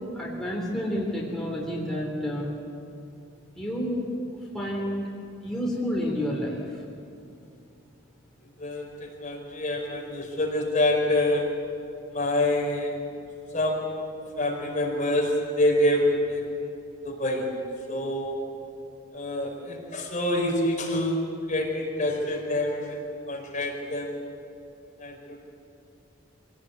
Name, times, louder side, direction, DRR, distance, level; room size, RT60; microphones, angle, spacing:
voice 1, 0.1-2.6 3.5-4.0 4.5-5.1 5.4-6.8, equal, 5° left, -4 dB, 3.3 m, -29 dB
voice 2, 8.6-11.6 12.1-13.0 13.5-14.1 14.4-16.7 17.0-17.5 17.9-18.4 19.1-23.0 23.3-24.2 25.0-25.4, left 1 dB, 40° left, -1 dB, 4.8 m, -26 dB
25.5 x 18.5 x 8.2 m, 2.6 s
head